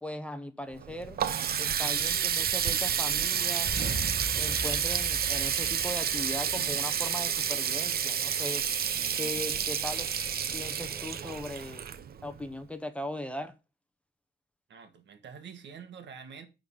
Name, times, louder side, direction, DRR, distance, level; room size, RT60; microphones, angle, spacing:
voice 1, 0.0-1.2 1.6-3.8 4.4-8.7 9.2-10.1 10.5-11.9 12.2-13.5, left 1 dB, 5° left, 0.8 m, -38 dB
Water tap faucet, 0.7-12.4, right 8 dB, 55° right, 0.7 m, -30 dB
Alarm, 3.7-11.4, equal, 15° right, 1.9 m, -42 dB
voice 2, 14.7-16.5, right 6 dB, 70° right, 1.6 m, -46 dB
10.0 x 4.0 x 5.6 m
wide cardioid pair, 130°, 19 cm